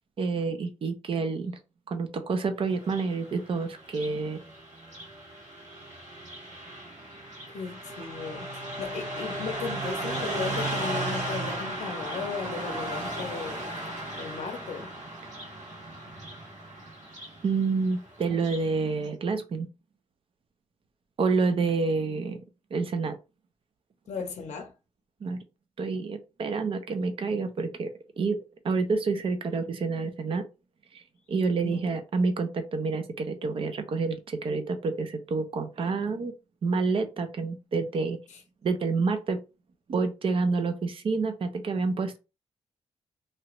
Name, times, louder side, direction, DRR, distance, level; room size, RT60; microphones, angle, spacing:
voice 1, 0.2-1.5 1.9-4.4 17.4-19.7 21.2-22.4 22.7-23.2 25.2-25.4 25.8-27.9 28.2-28.4 28.6-30.4 30.9-31.0 31.3-36.3 36.6-38.2 38.6-39.4 39.9-42.2, right 4 dB, 50° right, 0.6 m, -28 dB
Car passing by, 2.7-18.7, right 1 dB, 85° right, 1.5 m, -36 dB
voice 2, 7.5-13.7 14.2-14.9 24.1-24.7 31.6-31.9 38.3-38.4, left 5 dB, 75° left, 0.6 m, -36 dB
3.2 x 2.4 x 3.0 m
wide cardioid pair, 145°, 12 cm